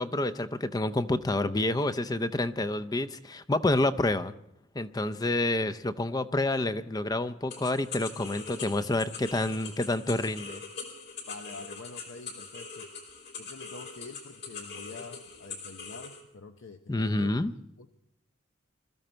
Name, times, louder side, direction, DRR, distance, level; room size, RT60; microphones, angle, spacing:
voice 1, 0.0-4.3 4.7-10.6 16.9-17.5, left 2 dB, 20° left, 14 dB, 0.5 m, -28 dB
sound 1, 7.5-16.2, left 5 dB, 55° left, 3.3 m, -42 dB
voice 2, 11.3-12.9 13.4-17.9, left 3 dB, 80° left, 7 dB, 0.7 m, -46 dB
22.5 x 13.5 x 4.4 m, 0.81 s
head